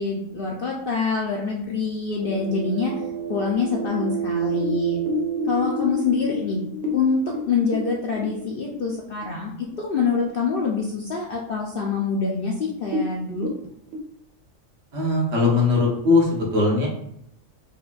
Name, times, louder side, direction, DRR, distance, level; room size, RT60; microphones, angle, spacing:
voice 1, 0.0-2.9 3.3-5.0 5.4-6.6 6.9-7.2 7.5-9.5 9.8-13.5, left 5 dB, 60° left, -2 dB, 0.6 m, -25 dB
sound 1, 2.2-6.7, right 9 dB, 50° right, 0.6 m, -30 dB
sound 2, 3.8-9.4 9.7-9.8 10.2-10.8 11.2-11.3 11.9-12.0 12.3-12.4 12.8-14.0, left 4 dB, 85° right, 1.1 m, -31 dB
voice 2, 14.9-16.9, left 3 dB, 70° right, -3 dB, 1.3 m, -20 dB
4.9 x 2.2 x 2.3 m, 0.74 s
omnidirectional pair, 1.4 m